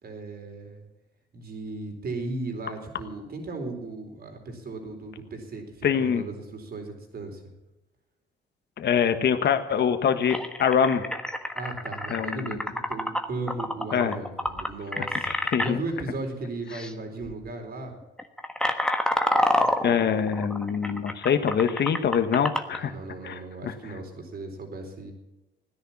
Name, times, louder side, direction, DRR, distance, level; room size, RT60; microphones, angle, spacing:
voice 1, 0.0-0.9 1.3-7.4 11.5-17.9 20.1-20.2 22.8-25.1, right 2 dB, 50° right, 4 dB, 4.3 m, -36 dB
voice 2, 5.8-6.2 8.8-11.0 12.1-12.6 13.9-14.1 15.0-15.8 19.8-22.9 23.2-23.7, left 7 dB, 60° left, 8 dB, 1.5 m, -24 dB
sound 1, 9.7-9.8 10.3-15.7 16.7-16.9 17.2-17.5 18.0-22.8, left 1 dB, 5° left, 1.4 m, -28 dB
16.5 x 10.5 x 7.3 m, 1.0 s
cardioid pair, 90°, 20 cm